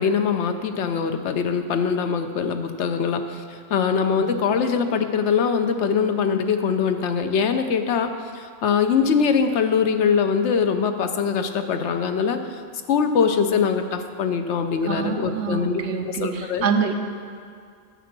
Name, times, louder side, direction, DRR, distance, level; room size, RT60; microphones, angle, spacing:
voice 1, 0.0-12.4 12.9-16.7, left 6 dB, 75° left, 7 dB, 1.0 m, -22 dB
voice 2, 14.8-16.9, right 5 dB, 70° right, 5 dB, 1.1 m, -26 dB
9.5 x 7.2 x 6.0 m, 2.2 s
omnidirectional pair, 1.2 m